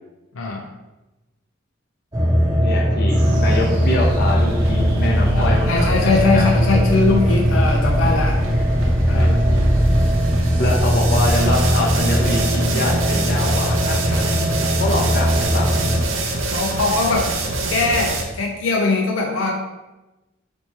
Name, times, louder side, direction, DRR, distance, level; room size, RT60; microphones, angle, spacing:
voice 1, 0.3-0.7 5.3-8.4 9.1-9.4 14.1-14.6 16.5-17.3 17.7-19.5, left 3 dB, 90° left, 1 dB, 0.5 m, -21 dB
sound 1, 2.1-16.0, equal, 20° right, 0.8 m, -19 dB
voice 2, 2.6-6.5 9.1-9.6 10.6-14.0 14.8-15.7, left 2 dB, 55° left, -1 dB, 0.8 m, -25 dB
sound 2, 3.1-13.8, equal, 55° right, 0.8 m, -26 dB
sound 3, 3.2-18.2, right 2 dB, 85° right, 0.6 m, -27 dB
3.4 x 3.1 x 4.1 m, 1.1 s
head